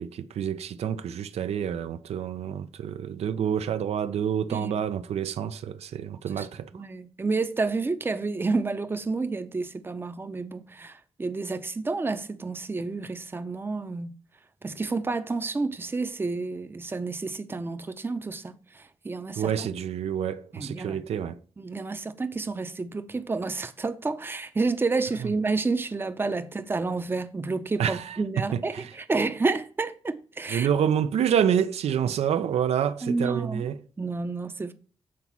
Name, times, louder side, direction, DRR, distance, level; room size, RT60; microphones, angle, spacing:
voice 1, 0.0-6.8 19.4-21.4 27.8-28.2 28.5-28.9 30.5-33.8, right 8 dB, 80° right, 0.5 m, -28 dB
voice 2, 6.7-14.2 14.6-19.7 20.5-21.0 21.6-30.7 33.0-33.7 34.0-34.7, right 3 dB, 20° right, 0.6 m, -30 dB
7.4 x 4.1 x 6.0 m
wide cardioid pair, 120°, 11 cm